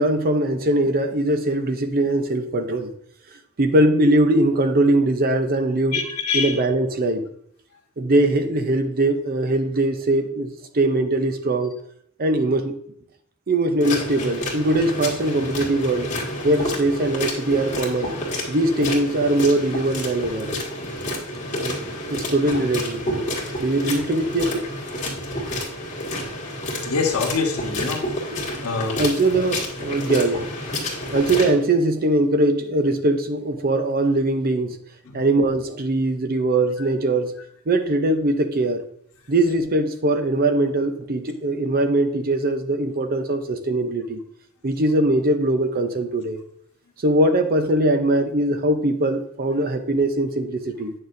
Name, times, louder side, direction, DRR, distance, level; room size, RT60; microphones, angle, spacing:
voice 1, 0.0-2.9 3.6-6.0 6.3-7.3 8.0-11.7 12.2-12.7 13.5-16.1 16.4-18.1 18.5-20.5 21.6-21.8 22.1-23.3 23.6-24.7 27.9-28.0 28.3-28.7 28.9-30.5 31.1-34.8 35.1-37.3 37.7-38.8 39.3-44.2 44.6-46.4 47.0-50.9, right 1 dB, 45° right, 8 dB, 0.7 m, -21 dB
voice 2, 5.9-6.6 26.8-28.2 28.6-29.0 35.1-35.2, left 4 dB, 75° left, 2 dB, 1.3 m, -25 dB
sound 1, 13.8-31.5, left 1 dB, 35° left, 1.9 m, -29 dB
8.8 x 6.3 x 2.6 m, 0.68 s
head